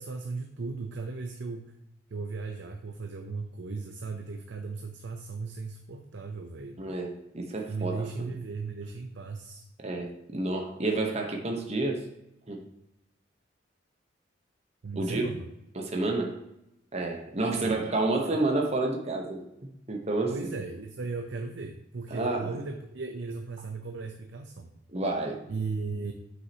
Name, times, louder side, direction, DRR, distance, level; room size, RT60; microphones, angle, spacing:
voice 1, 0.0-1.8 2.1-6.8 7.7-9.6 14.8-15.4 17.6-17.8 18.2-18.4 20.3-24.7 25.5-26.1, right 4 dB, 65° right, 5 dB, 0.6 m, -36 dB
voice 2, 6.8-8.3 9.8-12.1 12.5-12.6 15.0-15.3 15.7-16.3 16.9-20.5 22.1-22.6 24.9-25.4, right 2 dB, 35° right, 1 dB, 1.0 m, -30 dB
8.1 x 6.4 x 2.8 m, 0.85 s
head